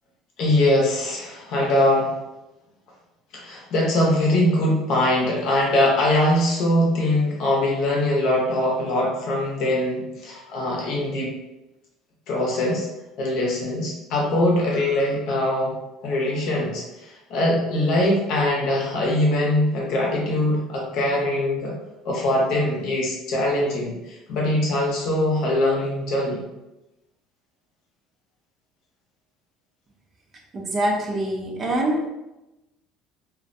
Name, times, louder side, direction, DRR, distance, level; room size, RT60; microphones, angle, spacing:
voice 1, 0.4-2.1 3.3-11.3 12.3-12.9 13.2-15.8 16.0-21.8 22.0-26.4, left 1 dB, 55° left, -2 dB, 0.7 m, -22 dB
voice 2, 30.5-32.1, right 1 dB, 25° right, 0 dB, 0.4 m, -24 dB
2.3 x 2.1 x 2.5 m, 0.96 s
cardioid pair, 155°, 0 cm